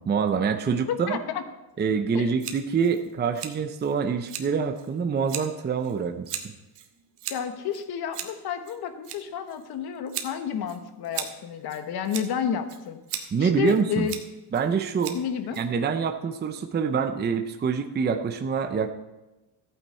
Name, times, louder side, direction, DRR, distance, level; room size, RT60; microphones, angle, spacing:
voice 1, 0.0-1.2 1.8-6.4 13.3-14.1 14.5-15.2 15.6-18.9, right 6 dB, 25° right, 6 dB, 0.6 m, -26 dB
voice 2, 0.9-1.4 2.1-2.3 7.3-14.1 15.1-15.6, left 8 dB, 60° left, 8 dB, 1.3 m, -31 dB
Scissors, 2.4-16.1, right 9 dB, 70° right, 1.5 m, -40 dB
14.0 x 9.0 x 4.3 m, 1.0 s
cardioid pair, 130°, 43 cm